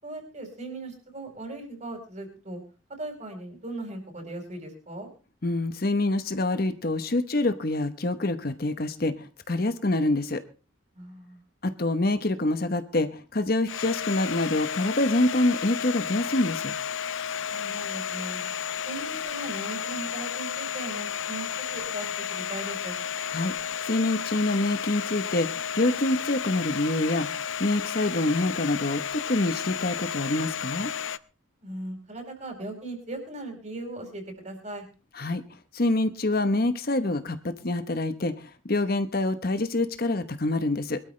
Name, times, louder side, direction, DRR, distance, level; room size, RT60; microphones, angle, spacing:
voice 1, 0.0-2.6 3.0-5.1 10.9-11.4 17.5-18.4 18.8-23.0 31.6-34.8, right 2 dB, 35° right, 4 dB, 4.8 m, -38 dB
voice 2, 5.4-10.4 11.6-16.7 23.3-23.5 23.8-30.9 35.1-35.4 35.7-41.0, left 2 dB, 50° left, 10 dB, 1.0 m, -26 dB
Domestic sounds home sounds, 13.7-31.2, left 8 dB, 75° left, 0.6 m, -32 dB
22.5 x 12.5 x 3.3 m, 0.33 s
head